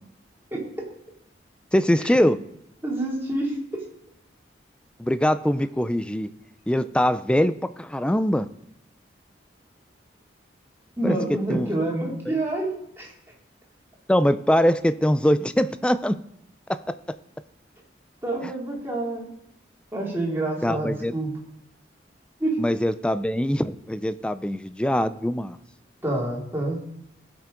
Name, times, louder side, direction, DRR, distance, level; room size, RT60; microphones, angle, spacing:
voice 1, 1.7-2.4 5.0-6.3 6.7-8.5 11.0-11.7 14.1-16.2 16.7-17.0 18.4-18.5 20.6-21.1 22.6-25.6, equal, 5° left, 13 dB, 0.4 m, -23 dB
voice 2, 2.8-3.8 11.0-13.1 18.2-19.3 19.9-21.3 22.4-22.6 26.0-26.8, right 2 dB, 15° right, -3 dB, 2.6 m, -27 dB
16.5 x 5.9 x 3.8 m, 0.78 s
head